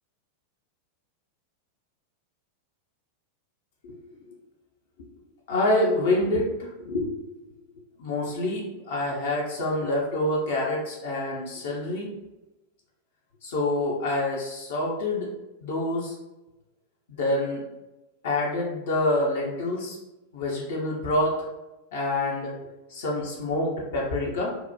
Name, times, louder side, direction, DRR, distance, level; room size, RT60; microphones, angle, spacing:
voice 1, 5.5-7.1 8.0-12.1 13.4-15.3 15.6-16.2 17.1-17.6 18.2-20.0 20.3-21.3 21.9-22.6 22.9-24.5, left 1 dB, 55° left, -3 dB, 0.5 m, -27 dB
2.7 x 2.0 x 2.3 m, 1.0 s
figure-of-eight pair, 90°, 0 cm